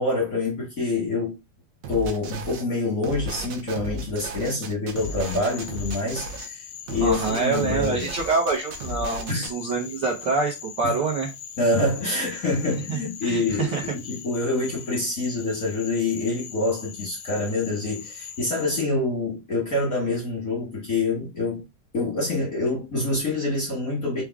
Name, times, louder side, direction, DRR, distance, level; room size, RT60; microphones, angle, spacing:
voice 1, 0.0-1.3 1.9-8.1 9.3-9.5 10.8-10.9 11.6-21.6 21.9-24.2, left 2 dB, 55° left, 0.9 m, -26 dB
sound 1, 1.8-2.6 3.0-6.5 6.9-9.5, right 1 dB, 70° right, 1.7 m, -35 dB
Frog, 5.0-18.8, left 9 dB, 85° left, 1.3 m, -41 dB
voice 2, 7.0-11.3 12.9-13.9, right 4 dB, 85° right, 0.9 m, -26 dB
5.1 x 2.3 x 3.5 m
omnidirectional pair, 3.4 m